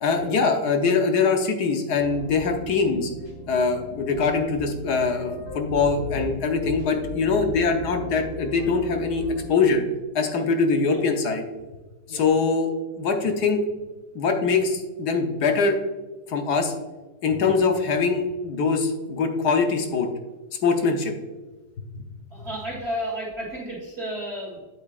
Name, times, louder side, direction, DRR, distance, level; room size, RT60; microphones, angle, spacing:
voice 1, 0.0-3.1 3.5-9.8 10.1-11.4 12.1-12.7 13.0-13.6 14.1-15.8 16.3-16.7 17.2-20.1 20.6-21.1, left 4 dB, 65° left, 4 dB, 1.4 m, -23 dB
sound 1, 1.9-9.5, left 1 dB, 35° left, 2.1 m, -38 dB
voice 2, 22.3-24.6, equal, 35° right, -3 dB, 1.9 m, -33 dB
8.5 x 8.3 x 2.4 m, 1.2 s
omnidirectional pair, 1.9 m